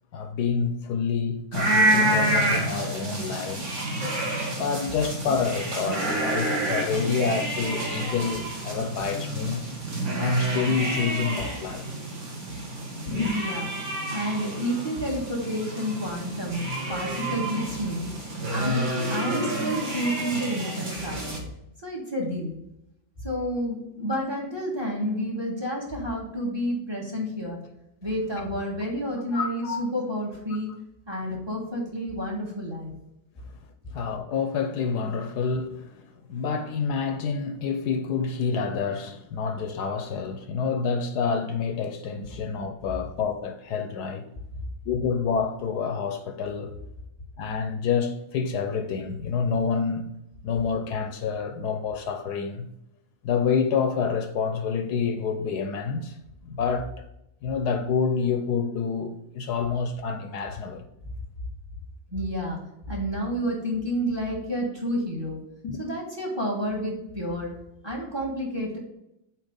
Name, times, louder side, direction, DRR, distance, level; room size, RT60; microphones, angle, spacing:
voice 1, 0.1-3.7 4.5-9.6 10.2-11.8 13.1-13.3 29.3-29.8 33.9-44.2 44.9-46.7 47.4-50.1 50.4-52.7 53.2-56.2 56.4-57.0 57.4-60.8 65.6-65.8, left 5 dB, 75° left, 1.2 m, -28 dB
sound 1, 1.5-21.4, right 1 dB, 45° right, 1.9 m, -29 dB
voice 2, 13.3-13.7 14.1-18.1 18.5-21.4 21.8-22.5 23.2-27.6 28.0-30.7 31.1-32.9 62.1-62.6 62.9-65.4 65.8-67.5 67.8-68.8, equal, 15° right, 1.6 m, -30 dB
8.4 x 3.2 x 5.2 m
omnidirectional pair, 1.8 m